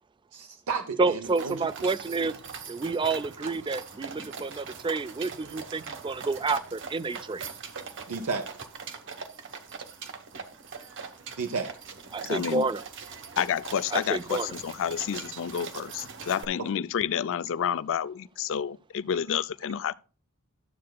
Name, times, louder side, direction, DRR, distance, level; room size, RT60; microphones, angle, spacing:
voice 1, 0.3-1.6 8.1-8.5 11.4-11.7, right 5 dB, 85° right, 0.7 m, -32 dB
voice 2, 1.0-2.3 2.7-7.5 12.1-12.8 13.9-14.5, right 3 dB, 20° right, 0.4 m, -29 dB
Horse and Carriage, 1.2-16.4, right 5 dB, 60° right, 1.2 m, -42 dB
voice 3, 12.3-12.7 13.4-19.9, left 8 dB, 65° left, 0.4 m, -29 dB
12.0 x 7.5 x 2.2 m
head